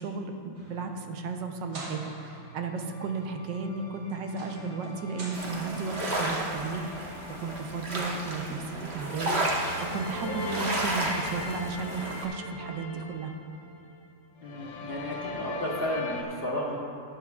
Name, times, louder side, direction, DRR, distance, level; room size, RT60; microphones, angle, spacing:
voice 1, 0.0-13.3, right 4 dB, 85° right, 5 dB, 1.4 m, -34 dB
sound 1, 0.5-5.6, right 3 dB, 65° right, 2.4 m, -46 dB
sound 2, 2.4-8.1 9.2-14.1 14.4-16.2, left 1 dB, 80° left, 1.6 m, -41 dB
sound 3, 5.3-12.3, right 1 dB, 40° right, 1.3 m, -32 dB
voice 2, 14.4-16.8, left 1 dB, 40° left, -3 dB, 1.0 m, -33 dB
12.0 x 10.5 x 2.4 m, 2.8 s
omnidirectional pair, 1.9 m